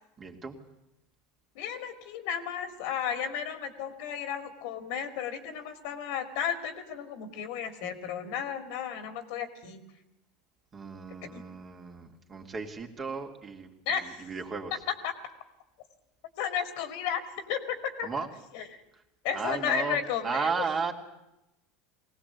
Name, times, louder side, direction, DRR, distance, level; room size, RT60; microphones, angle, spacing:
voice 1, 0.2-0.6 10.7-14.7 18.0-18.3 19.3-20.0 20.2-20.9, right 5 dB, 30° right, 2 dB, 3.0 m, -34 dB
voice 2, 1.5-9.8 11.2-11.4 13.9-14.3 14.9-15.1 16.4-17.2 17.5-18.1 18.5-18.8 19.2-20.6, left 8 dB, 65° left, 9 dB, 2.5 m, -33 dB
20.5 x 18.0 x 8.4 m, 0.90 s
hypercardioid pair, 85°, 0 cm